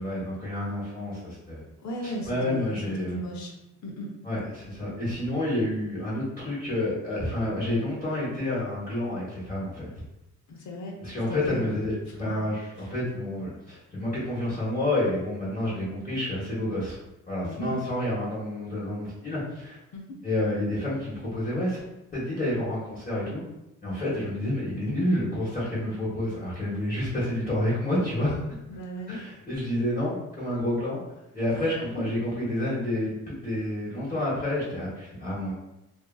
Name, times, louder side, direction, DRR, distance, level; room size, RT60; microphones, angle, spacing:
voice 1, 0.0-1.6 2.0-3.2 4.2-9.9 11.0-17.0 17.3-19.8 20.2-21.8 22.1-23.4 23.8-28.4 29.1-31.0 31.3-35.5, left 1 dB, 25° left, -10 dB, 1.1 m, -29 dB
voice 2, 1.8-3.5 3.8-4.1 10.5-11.0 11.3-11.7 12.3-12.4 12.8-12.9 17.4-17.7 19.9-20.0 28.7-29.1 31.6-31.8, equal, 65° left, 1 dB, 0.6 m, -36 dB
2.6 x 2.4 x 2.3 m, 0.91 s
cardioid pair, 90°, 31 cm